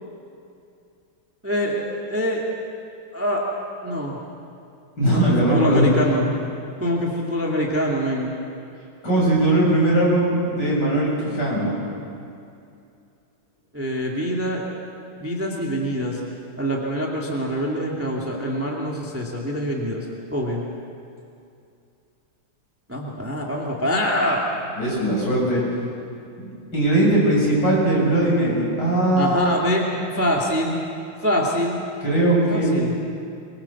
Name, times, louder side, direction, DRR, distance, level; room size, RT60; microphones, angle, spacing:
voice 1, 1.4-2.4 3.1-3.4 3.8-4.2 5.1-6.2 6.8-8.3 13.7-14.6 15.2-16.2 16.6-20.0 20.3-20.6 22.9-24.4 29.2-29.8 30.1-30.8 31.2-31.8 32.5-32.9, equal, 5° right, -2 dB, 2.2 m, -24 dB
voice 2, 5.0-6.0 9.0-11.9 24.8-25.6 26.4-26.5 26.7-29.5 29.9-30.0 32.0-32.8, right 1 dB, 50° left, -5 dB, 8.3 m, -19 dB
24.5 x 22.5 x 7.2 m, 2.5 s
omnidirectional pair, 2.3 m